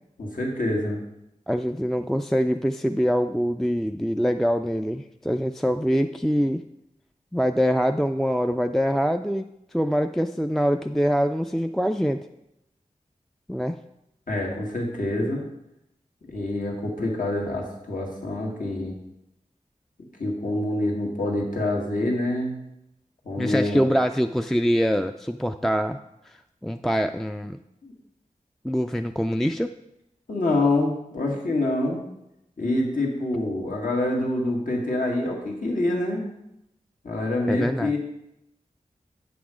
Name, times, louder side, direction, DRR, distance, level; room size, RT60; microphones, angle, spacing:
voice 1, 0.2-1.0 14.3-15.4 16.3-18.9 20.2-22.6 23.2-23.9 27.8-27.9 30.3-32.0 32.6-36.2 37.0-38.0, left 2 dB, 75° left, -1 dB, 1.8 m, -26 dB
voice 2, 1.5-6.6 7.3-9.5 9.7-12.2 13.5-13.8 23.4-26.0 26.3-26.4 26.6-27.6 28.6-29.7 37.5-37.9, equal, ahead, 7 dB, 0.3 m, -24 dB
8.7 x 6.1 x 4.9 m, 0.86 s
wide cardioid pair, 65°, 14 cm